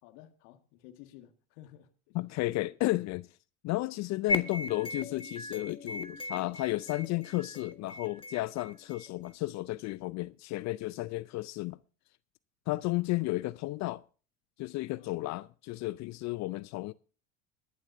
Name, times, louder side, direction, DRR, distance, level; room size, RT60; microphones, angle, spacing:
voice 1, 0.0-2.2 15.0-15.2, left 13 dB, 65° left, 1.8 m, -54 dB
voice 2, 2.1-3.3 3.6-11.8 12.7-14.0 14.6-16.9, left 19 dB, 45° left, 0.5 m, -33 dB
sound 1, 4.3-9.3, left 2 dB, 15° left, 1.4 m, -38 dB
20.0 x 11.5 x 2.7 m
hypercardioid pair, 90°, 38 cm